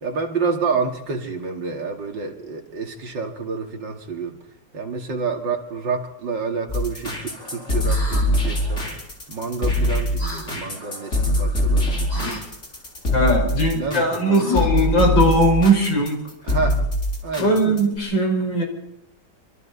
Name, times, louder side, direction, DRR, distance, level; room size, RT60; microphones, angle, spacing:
voice 1, 0.0-4.4 4.7-8.8 9.3-12.4 13.3-14.6 16.5-16.9 17.2-17.5, right 4 dB, 80° right, 2 dB, 3.1 m, -28 dB
sound 1, 6.7-18.0, left 1 dB, 40° left, 4.7 m, -22 dB
sound 2, 7.8-8.3 10.2-10.5 12.1-12.4 14.4-14.9, left 3 dB, 20° left, 4.0 m, -31 dB
voice 2, 13.1-16.2 17.4-18.6, right 1 dB, 90° left, 2 dB, 5.6 m, -19 dB
25.5 x 25.5 x 4.1 m, 0.81 s
omnidirectional pair, 2.0 m